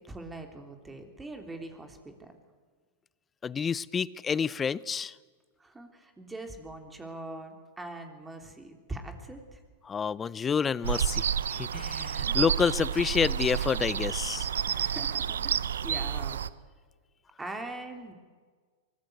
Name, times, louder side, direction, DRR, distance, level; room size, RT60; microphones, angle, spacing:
voice 1, 0.1-2.3 5.6-9.6 12.3-12.4 14.7-16.4 17.4-18.1, right 2 dB, 10° right, 5 dB, 3.4 m, -42 dB
voice 2, 3.4-5.1 9.9-14.5, left 6 dB, 20° left, 21 dB, 0.6 m, -29 dB
sound 1, 10.8-16.5, right 8 dB, 85° right, 0.7 m, -30 dB
24.0 x 20.0 x 8.0 m, 1.5 s
hypercardioid pair, 115°, 0 cm